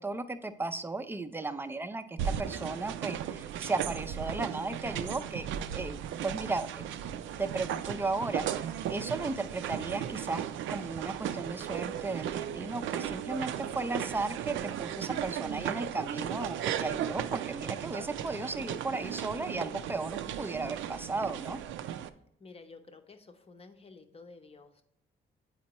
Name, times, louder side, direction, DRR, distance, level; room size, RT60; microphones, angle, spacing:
voice 1, 0.0-5.5 5.7-6.9 7.4-21.6, right 3 dB, 10° right, 10 dB, 0.4 m, -35 dB
sound 1, 2.2-22.1, right 10 dB, 75° right, 0.4 m, -36 dB
voice 2, 22.4-24.8, left 3 dB, 30° left, 6 dB, 0.8 m, -52 dB
8.4 x 4.3 x 3.0 m, 0.74 s
cardioid pair, 90°, 20 cm